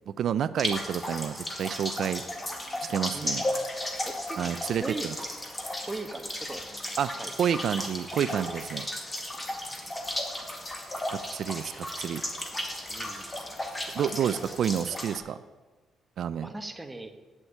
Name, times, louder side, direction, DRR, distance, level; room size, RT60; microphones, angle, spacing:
voice 1, 0.1-2.2 2.8-3.4 4.4-5.1 7.0-7.1 7.4-8.9 11.1-12.2 13.9-15.4 16.2-16.5, right 8 dB, 65° right, 14 dB, 0.4 m, -29 dB
sound 1, 0.6-15.2, left 1 dB, 20° left, 2.0 m, -35 dB
voice 2, 4.0-4.4 4.8-5.1 5.9-6.8 7.2-7.3 9.4-9.7 12.9-13.4 16.4-17.1, right 2 dB, 15° right, 7 dB, 1.2 m, -39 dB
8.9 x 7.9 x 9.0 m, 1.3 s
cardioid pair, 90°, 0 cm